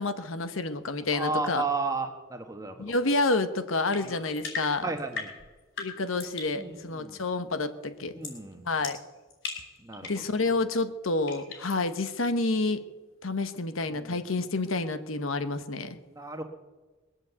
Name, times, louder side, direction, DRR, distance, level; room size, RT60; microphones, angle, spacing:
voice 1, 0.0-1.6 2.8-4.9 5.8-8.1 8.6-9.0 10.1-12.8 13.2-16.0, left 3 dB, 75° left, 10 dB, 1.1 m, -29 dB
voice 2, 1.1-2.9 4.0-4.1 4.8-5.3 6.6-7.2 8.1-8.6 9.8-10.1 14.0-14.2 16.2-16.4, right 3 dB, 15° right, 5 dB, 1.2 m, -33 dB
sound 1, 3.9-6.6 8.2-8.4 8.8-10.3 11.3-11.8, left 5 dB, 60° left, 5.5 m, -39 dB
21.5 x 8.0 x 8.1 m, 1.2 s
head